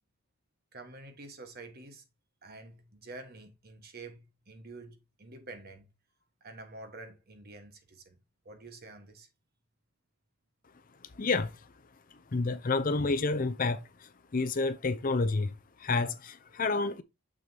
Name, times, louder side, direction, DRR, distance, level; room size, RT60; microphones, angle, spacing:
voice 1, 0.7-2.0 2.4-5.9 6.4-8.2 8.4-9.3, right 2 dB, 45° right, 1.4 m, -48 dB
voice 2, 11.0-11.7 12.1-17.0, left 3 dB, 40° left, 0.5 m, -30 dB
6.7 x 6.4 x 2.8 m
head